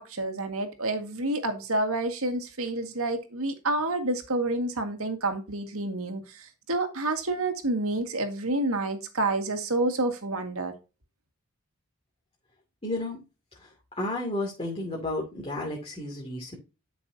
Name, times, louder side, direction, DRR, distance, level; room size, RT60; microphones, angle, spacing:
voice 1, 0.0-10.7, right 2 dB, 70° right, 2.0 m, -29 dB
voice 2, 12.8-13.2 13.5-16.5, left 1 dB, 25° left, 2.6 m, -32 dB
12.0 x 6.1 x 2.8 m
head